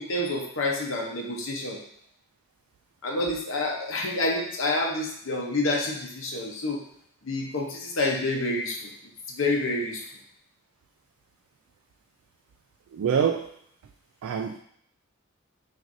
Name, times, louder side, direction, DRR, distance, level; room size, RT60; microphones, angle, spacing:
voice 1, 0.0-1.8 3.0-6.8 7.2-8.9 9.3-10.0, left 2 dB, 65° left, 0 dB, 0.8 m, -28 dB
voice 2, 12.9-13.5 14.2-14.6, right 7 dB, 80° right, 5 dB, 0.3 m, -25 dB
6.0 x 2.6 x 2.6 m, 0.68 s
head